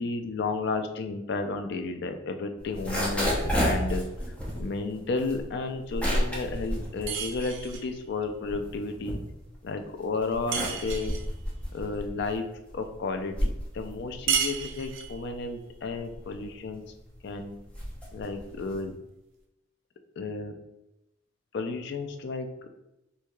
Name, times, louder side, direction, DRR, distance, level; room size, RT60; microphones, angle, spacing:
voice 1, 0.0-4.1 4.6-9.2 9.6-11.1 11.7-12.5 12.7-16.8 17.2-17.5 18.1-19.0 20.2-20.6 21.5-22.7, left 3 dB, 65° left, 6 dB, 0.4 m, -32 dB
sound 1, 2.6-7.9 8.3-9.7 10.2-18.9, equal, 5° left, 0.8 m, -32 dB
sound 2, 7.1-7.9 10.5-11.3 14.3-15.2, right 7 dB, 80° right, 0.5 m, -31 dB
4.5 x 2.7 x 2.3 m, 0.91 s
head